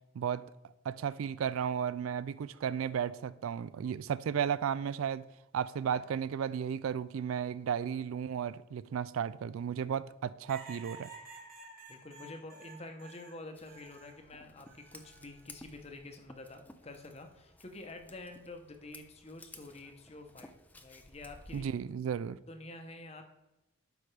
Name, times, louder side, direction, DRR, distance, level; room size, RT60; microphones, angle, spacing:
voice 1, 0.1-0.5 0.9-5.2 5.5-11.1 21.5-22.4, right 8 dB, 90° right, 0.3 m, -34 dB
sound 1, 10.5-14.2 14.7-15.5 16.8-17.2, right 4 dB, 45° right, 1.5 m, -51 dB
voice 2, 11.9-21.7 22.5-23.3, left 2 dB, 30° left, 0.8 m, -48 dB
Scissors, 13.5-21.7, left 2 dB, 10° left, 0.4 m, -56 dB
12.0 x 5.0 x 3.3 m
head